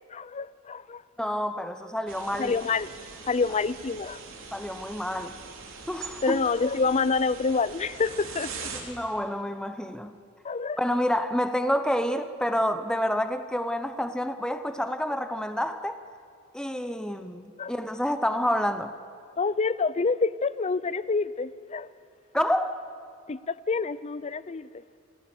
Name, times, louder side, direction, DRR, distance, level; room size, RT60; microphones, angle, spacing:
voice 1, 0.1-1.0 2.4-2.9 3.3-4.2 6.2-8.7 10.4-10.8 17.6-17.7 19.4-21.9 23.3-24.7, left 4 dB, 35° left, 0.5 m, -27 dB
voice 2, 1.2-2.6 4.5-5.4 5.9-6.4 8.7-10.2 10.8-16.0 16.5-19.0 22.3-22.8, equal, 5° left, 0.8 m, -28 dB
sound 1, 2.1-8.8, right 5 dB, 75° right, 3.3 m, -42 dB
27.5 x 16.5 x 8.3 m
head